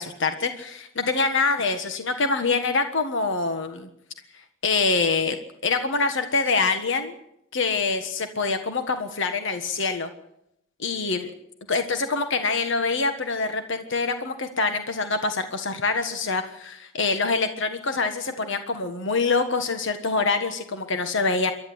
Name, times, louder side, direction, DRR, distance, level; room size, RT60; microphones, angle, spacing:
voice 1, 0.0-3.9 4.6-5.4 5.6-7.2 7.5-10.1 10.8-11.3 11.7-21.5, left 4 dB, 65° left, 7 dB, 1.5 m, -25 dB
28.0 x 12.5 x 8.0 m, 0.79 s
head